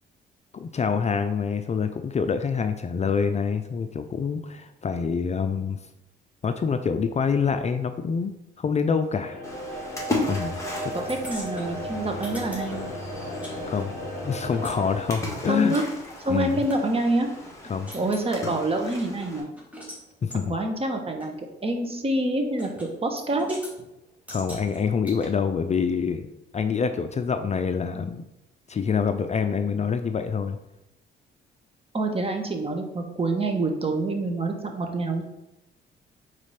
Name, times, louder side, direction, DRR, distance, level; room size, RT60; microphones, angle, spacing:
voice 1, 0.5-5.8 6.4-9.4 10.3-10.6 13.7-13.9 14.2-15.8 16.3-16.6 17.7-17.9 20.2-20.5 24.3-26.3 26.5-28.2 28.7-30.6, left 6 dB, 35° left, 8 dB, 0.4 m, -26 dB
sound 1, 9.2-15.0, equal, 50° left, 2.3 m, -35 dB
Splash splatter, 9.4-19.4, left 2 dB, 15° left, 2.0 m, -36 dB
voice 2, 10.9-12.9 15.5-15.8 16.2-17.3 17.9-19.5 20.5-21.4 21.6-23.6 31.9-35.2, right 2 dB, 30° right, 4 dB, 1.2 m, -26 dB
sound 2, 11.1-13.6 13.8-16.8 17.3-17.4 17.6-18.3 18.8-20.0 20.3-20.4 21.2-21.3 22.6-22.9 23.2-23.7 24.3-25.3, equal, 5° right, 2.2 m, -43 dB
4.9 x 4.1 x 5.7 m, 0.89 s
cardioid pair, 90°, 20 cm